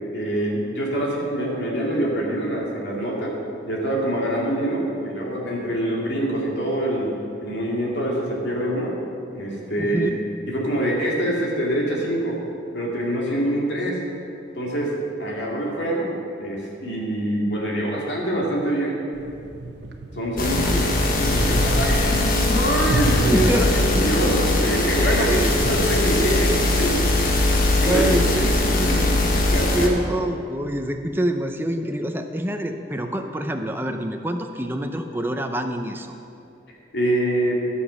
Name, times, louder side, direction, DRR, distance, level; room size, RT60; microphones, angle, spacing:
voice 1, 0.1-3.3 3.6-7.2 7.4-9.0 9.3-10.1 10.5-12.4 12.7-14.0 14.5-19.0 20.1-27.1 27.8-28.1 28.4-28.5 28.9-29.1 29.5-29.9 36.9-37.6, right 1 dB, 70° left, -3 dB, 2.4 m, -25 dB
voice 2, 9.8-10.2 20.6-21.0 23.3-23.6 25.2-25.5 27.4-29.2 29.7-36.1, right 1 dB, 10° right, 5 dB, 0.6 m, -27 dB
sound 1, 19.1-28.0, right 1 dB, 75° right, 1.0 m, -32 dB
sound 2, 20.4-29.9, left 2 dB, 50° left, 1.4 m, -21 dB
12.5 x 7.0 x 6.4 m, 2.6 s
head